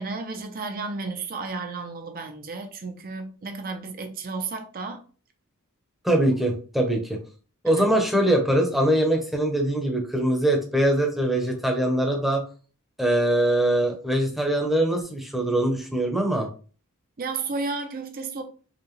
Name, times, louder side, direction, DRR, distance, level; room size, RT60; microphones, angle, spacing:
voice 1, 0.0-5.0 7.6-7.8 17.2-18.4, right 4 dB, 40° right, 0.6 m, -33 dB
voice 2, 6.0-7.2 7.6-12.4 13.0-16.5, right 1 dB, ahead, 0.8 m, -22 dB
4.8 x 2.3 x 3.2 m
head